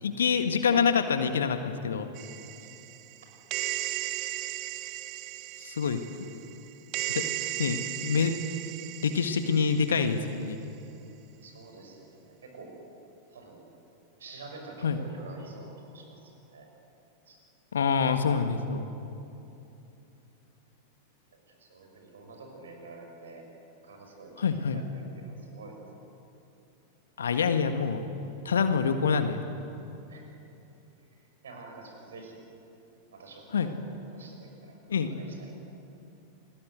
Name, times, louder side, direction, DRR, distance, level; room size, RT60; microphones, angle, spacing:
voice 1, 0.0-2.1 5.6-6.0 7.1-7.2 7.6-8.3 9.0-10.6 14.8-15.0 17.7-18.8 24.4-24.8 27.2-28.1 28.5-29.5 33.5-33.7 34.9-35.1, left 6 dB, 65° left, 8 dB, 1.7 m, -26 dB
sound 1, 2.2-10.3, right 15 dB, 40° right, 1.1 m, -36 dB
voice 2, 11.4-12.7 13.3-13.7 14.2-16.7 17.3-17.4 21.5-23.4 23.8-25.8 30.1-30.2 31.4-32.4 33.1-33.8 34.1-34.8 35.1-35.5, right 3 dB, 65° right, 3 dB, 6.3 m, -48 dB
29.5 x 20.5 x 8.1 m, 2.8 s
figure-of-eight pair, 90°, 0 cm